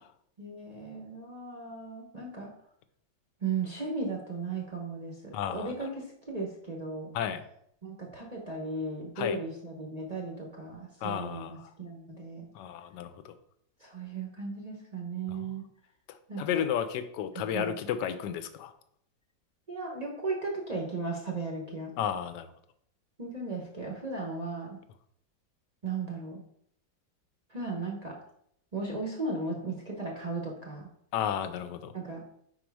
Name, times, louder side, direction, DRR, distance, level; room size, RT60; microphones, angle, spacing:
voice 1, 0.4-2.5 3.4-7.1 7.8-12.5 13.8-15.6 16.3-16.6 17.3-17.7 19.7-21.9 23.2-24.8 25.8-26.4 27.5-28.2 28.7-30.9 31.9-32.2, right 3 dB, 35° right, -1 dB, 0.6 m, -36 dB
voice 2, 5.3-5.7 7.1-7.4 9.2-9.4 11.0-11.7 12.5-13.3 15.3-15.4 16.4-18.7 22.0-22.5 31.1-31.9, left 9 dB, 75° left, 10 dB, 1.1 m, -32 dB
5.1 x 4.4 x 4.7 m, 0.70 s
omnidirectional pair, 2.0 m